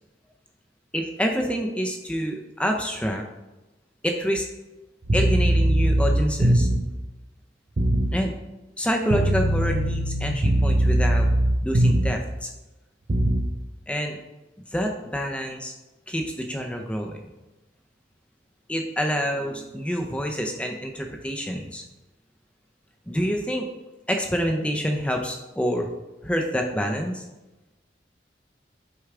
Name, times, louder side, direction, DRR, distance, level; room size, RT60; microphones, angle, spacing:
voice 1, 0.9-3.2 4.0-4.5 5.1-6.7 8.1-8.3 8.8-11.3 11.6-12.5 13.9-14.2 14.7-15.7 16.1-17.2 18.7-21.8 23.1-23.7 24.1-25.9 26.2-27.2, equal, 5° left, 2 dB, 0.6 m, -27 dB
sound 1, 5.0-6.9 7.8-8.2 9.1-12.3 13.1-13.5, right 1 dB, 40° right, 0.6 m, -21 dB
6.6 x 4.6 x 3.6 m, 1.1 s
head